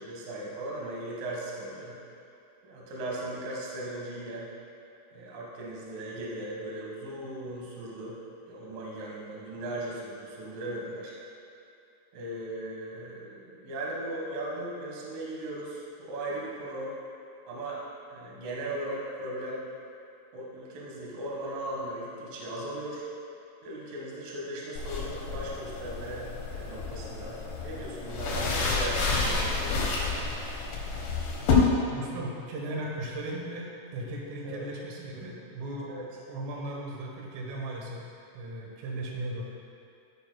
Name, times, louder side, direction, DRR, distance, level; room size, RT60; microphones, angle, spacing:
voice 1, 0.0-2.0 2.6-4.5 5.1-8.2 8.5-11.1 12.1-16.9 17.5-17.8 18.1-19.6 20.3-23.1 23.6-26.2 26.5-29.9 34.4-34.6 35.9-36.1, right 1 dB, 60° right, -4 dB, 2.6 m, -37 dB
sound 1, 24.8-31.5, left 4 dB, 70° left, 3.5 m, -31 dB
voice 2, 31.9-35.9 36.3-38.0 38.3-39.4, right 1 dB, 90° right, -2 dB, 3.9 m, -37 dB
14.0 x 9.5 x 2.3 m, 2.6 s
omnidirectional pair, 5.6 m